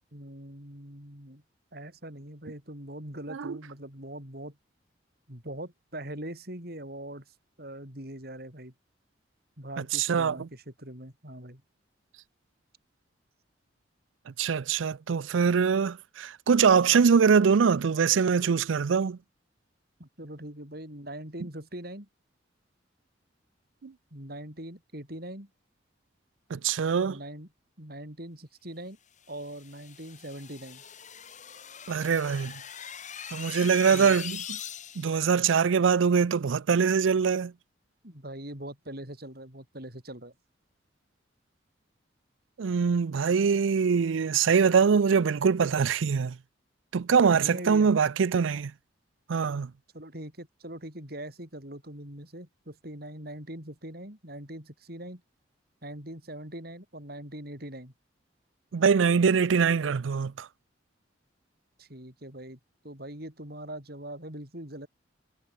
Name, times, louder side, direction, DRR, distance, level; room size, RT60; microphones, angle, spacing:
voice 1, 0.1-1.4 1.7-4.6 5.3-8.7 9.6-11.6 20.0-22.1 24.1-25.5 27.0-27.5 27.8-29.0 29.3-30.8 33.9-34.2 38.0-40.3 47.3-47.9 49.9-55.2 55.8-57.9 61.8-62.6 62.8-64.9, right 1 dB, 55° right, 7.3 m, -42 dB
voice 2, 9.9-10.5 14.4-19.2 23.8-23.9 26.5-27.2 31.9-32.5 33.3-34.6 35.0-37.5 42.6-46.4 46.9-48.7 49.3-49.7 58.7-60.5, right 6 dB, 90° right, 0.5 m, -23 dB
sound 1, 29.3-35.3, left 8 dB, 40° left, 6.2 m, -42 dB
head